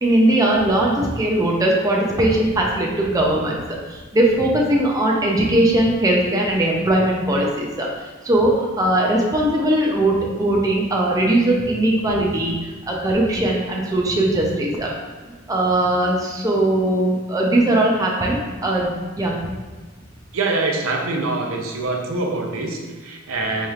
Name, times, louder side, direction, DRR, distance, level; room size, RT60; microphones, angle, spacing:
voice 1, 0.0-3.6 3.9-14.9 15.5-19.3, right 1 dB, 15° right, -2 dB, 0.5 m, -19 dB
voice 2, 20.3-23.7, right 3 dB, 90° right, 1 dB, 0.6 m, -24 dB
4.1 x 3.3 x 2.4 m, 1.3 s
head